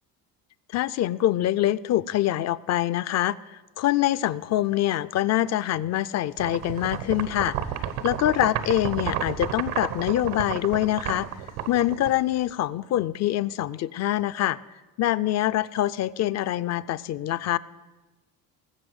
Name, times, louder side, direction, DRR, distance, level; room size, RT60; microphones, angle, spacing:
voice 1, 0.7-11.3 11.7-14.6 15.0-17.6, left 13 dB, 45° left, 16 dB, 0.4 m, -25 dB
sound 1, 6.4-12.5, right 10 dB, 85° right, 1.1 m, -32 dB
19.5 x 7.7 x 7.9 m, 1.2 s
cardioid pair, 135°, 37 cm